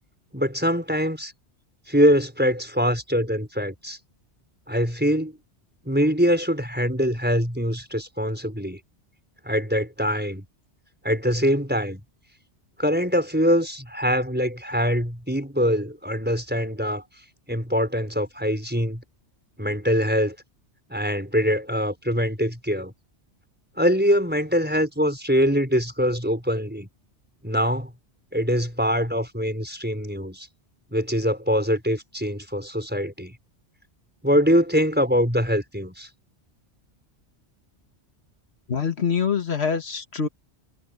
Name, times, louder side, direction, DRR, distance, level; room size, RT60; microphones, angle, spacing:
voice 1, 0.3-1.3 1.9-4.0 4.7-5.4 5.8-8.8 9.4-10.4 11.0-12.0 12.8-17.0 17.5-19.0 19.6-20.3 20.9-22.9 23.8-26.9 27.4-27.9 28.3-30.5 30.9-33.3 34.2-36.1, equal, 10° right, 5.0 m, -23 dB
voice 2, 38.7-40.3, left 6 dB, 65° left, 2.0 m, -25 dB
omnidirectional pair, 1.2 m